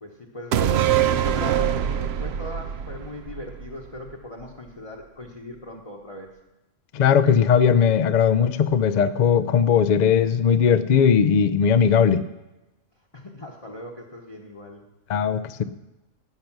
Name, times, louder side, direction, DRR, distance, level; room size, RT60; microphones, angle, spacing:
voice 1, 0.0-6.3 13.1-14.8, left 1 dB, 25° left, 1 dB, 1.1 m, -39 dB
sound 1, 0.5-4.1 4.4-4.5, right 10 dB, 60° right, 0.8 m, -24 dB
voice 2, 6.9-12.2 15.1-15.6, left 7 dB, 50° left, 13 dB, 0.5 m, -18 dB
16.5 x 6.7 x 6.0 m, 1.0 s
omnidirectional pair, 1.4 m